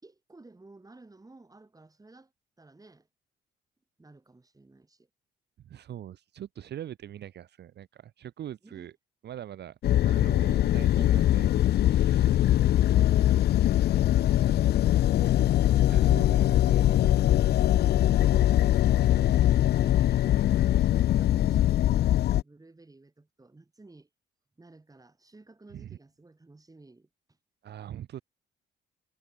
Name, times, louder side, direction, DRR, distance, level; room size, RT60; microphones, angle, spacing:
voice 1, 0.0-2.3 2.6-3.1 4.0-5.1 8.6-8.9 12.1-13.0 13.7-15.4 17.6-18.4 19.1-24.1 24.6-27.1, right 2 dB, 20° right, 5.2 m, -53 dB
voice 2, 5.6-8.9 9.2-9.8 10.0-11.5 11.8-12.3 15.9-17.3 25.7-26.0 27.6-28.2, right 11 dB, 60° right, 0.8 m, -42 dB
sound 1, 9.8-22.4, left 12 dB, 55° left, 0.4 m, -22 dB
cardioid pair, 90°, 20 cm